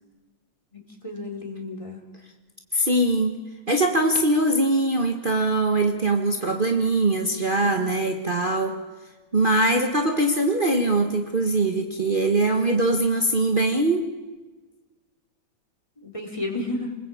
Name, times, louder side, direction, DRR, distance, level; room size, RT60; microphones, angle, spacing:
voice 1, 0.7-2.0 7.6-7.7 16.0-16.9, left 2 dB, 10° left, 2 dB, 4.0 m, -32 dB
voice 2, 2.7-3.4 3.7-8.8 9.3-14.1, right 2 dB, 35° right, 4 dB, 0.8 m, -22 dB
29.0 x 20.5 x 8.7 m, 1.3 s
omnidirectional pair, 3.4 m